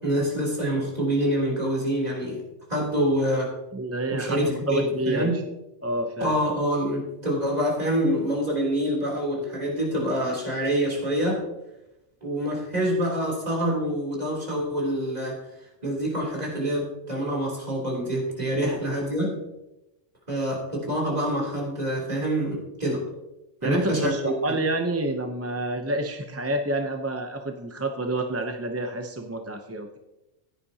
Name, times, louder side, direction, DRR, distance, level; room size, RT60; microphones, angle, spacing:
voice 1, 0.0-2.4 2.7-3.5 4.1-5.4 6.2-11.4 12.2-15.4 15.8-19.3 20.3-23.0 23.6-24.5, equal, 35° right, -2 dB, 3.4 m, -26 dB
voice 2, 3.7-5.4 5.8-6.3 18.6-18.8 23.6-30.0, right 1 dB, 15° right, 4 dB, 0.5 m, -28 dB
15.0 x 9.9 x 2.8 m, 0.97 s
omnidirectional pair, 1.2 m